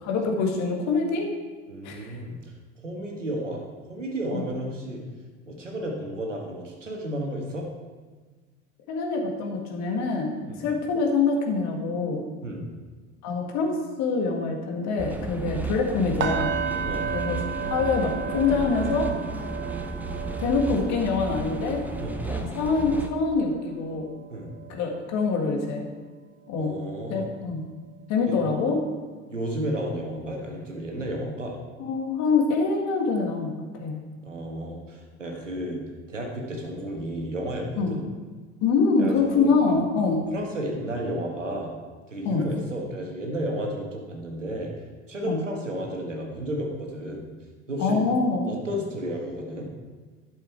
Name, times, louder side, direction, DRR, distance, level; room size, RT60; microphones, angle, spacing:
voice 1, 0.0-1.3 1.8-2.1 4.3-4.5 8.9-12.3 13.2-16.5 17.1-17.4 17.7-19.1 20.4-21.8 22.2-24.1 24.7-25.9 26.5-26.7 27.1-27.6 28.1-28.8 31.8-34.0 37.8-37.9 38.6-40.2 42.2-42.4 45.3-45.4 47.8-48.5, left 4 dB, 50° left, 2 dB, 1.9 m, -25 dB
voice 2, 1.7-2.5 2.8-3.6 3.9-5.0 5.4-7.7 10.5-10.7 12.4-12.7 16.8-17.1 22.0-22.2 24.3-24.5 26.6-27.3 28.3-28.4 29.3-31.5 34.2-35.8 36.1-38.0 39.0-39.5 40.1-41.7 42.1-44.7 45.1-47.3 47.7-48.0 48.5-49.7, right 1 dB, 85° right, 0 dB, 1.7 m, -32 dB
sound 1, 15.0-23.1, right 3 dB, 5° right, 0.7 m, -33 dB
sound 2, 16.2-26.1 26.5-26.8 27.2-27.3, right 7 dB, 30° right, 0.9 m, -35 dB
12.0 x 6.9 x 4.5 m, 1.4 s
figure-of-eight pair, 65°, 36 cm